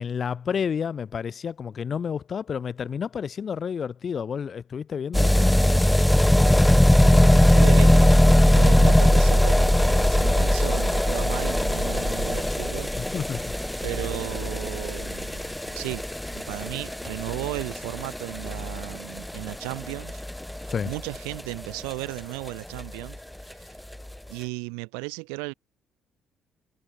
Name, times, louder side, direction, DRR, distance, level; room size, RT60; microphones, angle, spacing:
voice 1, 0.0-5.6 12.9-13.6 20.7-20.9, left 7 dB, 50° left, 2.1 m, -30 dB
sound 1, 5.1-21.9 22.2-22.3 22.5-22.6 22.8-22.9 23.1-23.2 23.9-24.0, left 1 dB, 5° left, 2.7 m, -20 dB
voice 2, 7.0-8.3 8.5-12.9 13.8-16.0 16.3-20.2 20.6-23.2 23.5-23.8 24.3-25.5, right 38 dB, 85° right, 3.6 m, -35 dB
supercardioid pair, 65°, 0 cm